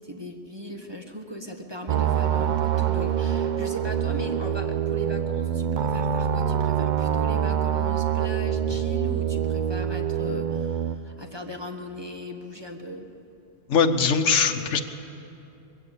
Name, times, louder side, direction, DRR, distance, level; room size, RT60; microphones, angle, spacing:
voice 1, 0.0-13.1, equal, 20° right, 3 dB, 1.2 m, -38 dB
sound 1, 1.9-10.9, right 9 dB, 50° right, 0.6 m, -25 dB
voice 2, 13.7-14.8, left 5 dB, 80° left, 5 dB, 1.3 m, -21 dB
21.0 x 16.0 x 8.4 m, 2.8 s
omnidirectional pair, 1.3 m